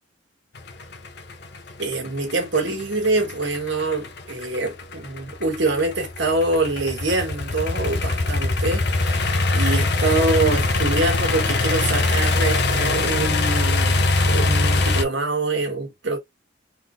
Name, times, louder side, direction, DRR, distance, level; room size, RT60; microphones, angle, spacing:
sound 1, 0.6-15.0, left 3 dB, 60° left, 0.8 m, -22 dB
voice 1, 1.8-16.2, right 2 dB, 70° right, 1.7 m, -25 dB
3.8 x 3.3 x 2.6 m
head